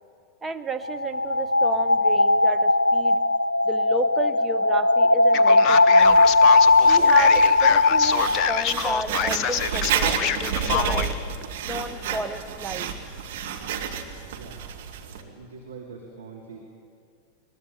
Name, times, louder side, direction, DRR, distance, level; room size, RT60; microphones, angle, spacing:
voice 1, 0.4-3.2 3.6-6.3 6.8-11.2 11.6-12.9, right 2 dB, 10° right, 7 dB, 1.2 m, -32 dB
sound 1, 0.8-8.6, left 3 dB, 80° left, 0.5 m, -18 dB
Male speech man speaking, 5.3-11.1, left 8 dB, 35° left, 1.0 m, -27 dB
Writing, 6.0-15.2, right 7 dB, 50° right, 2.2 m, -31 dB
voice 2, 14.3-14.7 15.0-16.6, right 5 dB, 70° right, -2 dB, 3.3 m, -43 dB
22.0 x 21.0 x 9.7 m, 2.3 s
figure-of-eight pair, 90°, 0 cm